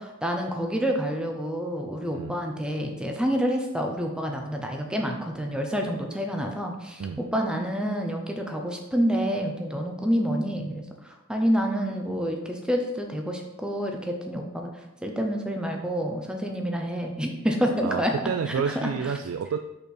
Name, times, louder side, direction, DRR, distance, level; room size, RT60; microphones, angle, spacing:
voice 1, 0.0-14.7 15.0-18.1 18.7-19.1, equal, 5° right, 2 dB, 0.7 m, -28 dB
voice 2, 17.8-19.6, right 6 dB, 80° right, 6 dB, 0.3 m, -29 dB
5.5 x 4.2 x 4.2 m, 0.94 s
head